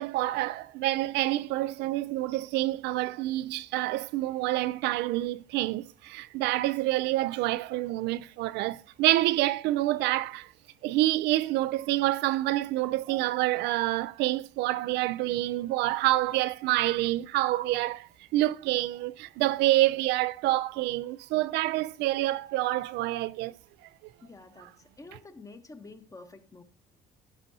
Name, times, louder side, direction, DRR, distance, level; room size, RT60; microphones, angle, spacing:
voice 1, 0.0-10.5 10.8-23.5, right 16 dB, 90° right, 0.4 m, -27 dB
voice 2, 15.3-15.6 24.2-26.6, left 3 dB, 20° left, 1.1 m, -49 dB
13.0 x 10.5 x 2.8 m
cardioid pair, 110°, 17 cm